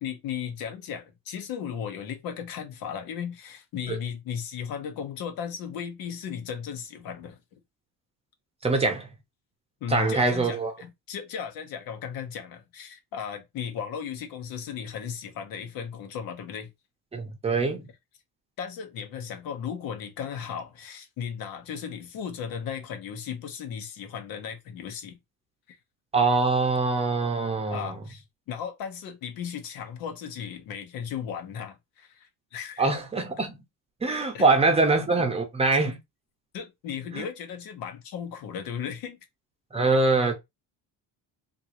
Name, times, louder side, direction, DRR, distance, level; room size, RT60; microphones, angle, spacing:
voice 1, 0.0-7.4 9.8-16.7 18.6-25.2 27.7-32.9 34.3-34.4 36.5-39.2, left 7 dB, 75° left, 1.0 m, -36 dB
voice 2, 8.6-9.1 9.9-10.7 17.1-17.9 26.1-27.9 32.8-33.6 34.0-36.0 37.1-37.2 39.7-40.3, right 3 dB, 15° right, 0.7 m, -23 dB
3.7 x 2.6 x 2.9 m
cardioid pair, 155°, 35 cm